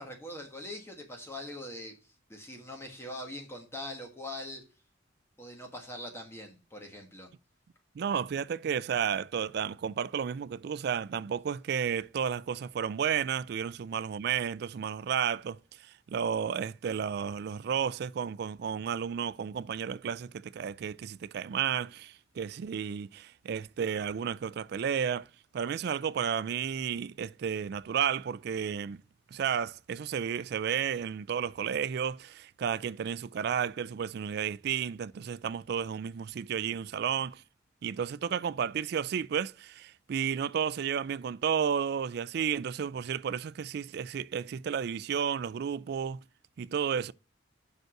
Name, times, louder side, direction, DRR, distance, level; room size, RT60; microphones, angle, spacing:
voice 1, 0.0-4.6 5.4-7.3, left 1 dB, 15° left, 1.3 m, -42 dB
voice 2, 8.0-15.6 15.8-25.3 25.5-29.0 29.3-37.4 37.8-46.2 46.6-47.1, right 7 dB, 55° right, 0.3 m, -32 dB
5.9 x 5.3 x 6.2 m
head